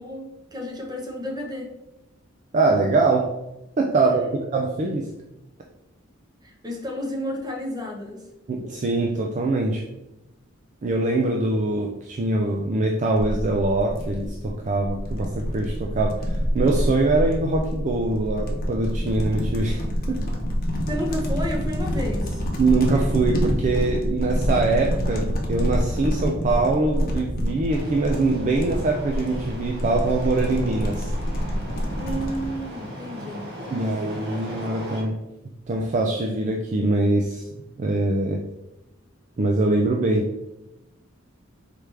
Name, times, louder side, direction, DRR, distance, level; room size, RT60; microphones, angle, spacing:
voice 1, 0.0-1.7 4.2-4.3 6.4-8.3 20.9-22.4 31.9-33.5, equal, 20° right, 1 dB, 0.9 m, -31 dB
voice 2, 2.5-3.3 3.8-4.2 4.5-5.1 8.5-9.8 10.8-19.8 20.1-20.2 22.6-31.1 33.7-35.1 35.7-37.5 37.8-38.5 39.4-40.3, right 2 dB, 35° right, 1 dB, 0.4 m, -23 dB
sound 1, 13.2-32.5, equal, 45° left, 0.9 m, -27 dB
sound 2, 27.7-35.0, equal, 55° right, 1.1 m, -38 dB
4.7 x 3.3 x 3.3 m, 0.95 s
head